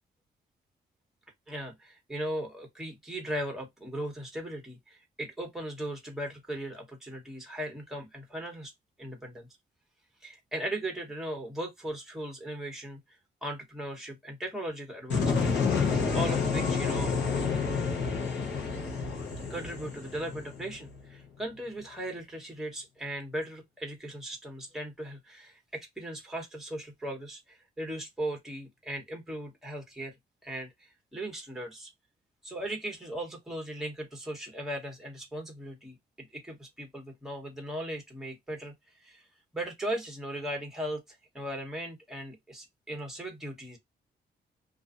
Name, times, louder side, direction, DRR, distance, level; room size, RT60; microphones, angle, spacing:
voice 1, 1.5-8.7 9.0-9.5 10.2-13.0 13.4-15.5 16.1-17.1 19.5-30.1 30.4-31.9 32.4-39.2 39.5-41.0 41.3-43.8, right 1 dB, ahead, 1.1 m, -38 dB
sound 1, 15.1-21.0, left 5 dB, 85° left, 1.0 m, -29 dB
2.5 x 2.4 x 2.5 m
cardioid pair, 110°, 18 cm